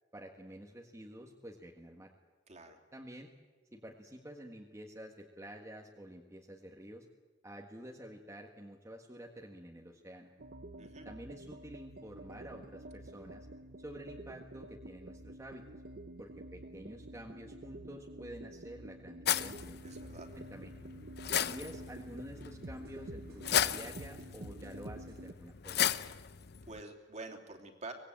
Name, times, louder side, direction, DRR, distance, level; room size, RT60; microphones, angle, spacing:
voice 1, 0.1-2.1 2.9-3.3 3.7-7.0 7.4-10.3 11.0-13.5 13.8-15.6 16.2-19.7 20.3-20.7 21.4-25.9, equal, 15° right, 0 dB, 1.6 m, -49 dB
voice 2, 2.5-2.8 10.8-11.1 19.8-20.3 26.7-27.9, right 3 dB, 40° right, 4 dB, 3.0 m, -47 dB
sound 1, 10.4-25.3, right 1 dB, 55° right, 0.8 m, -49 dB
sound 2, 19.3-26.8, left 9 dB, 60° left, 0.7 m, -36 dB
25.0 x 20.0 x 8.7 m, 1.3 s
head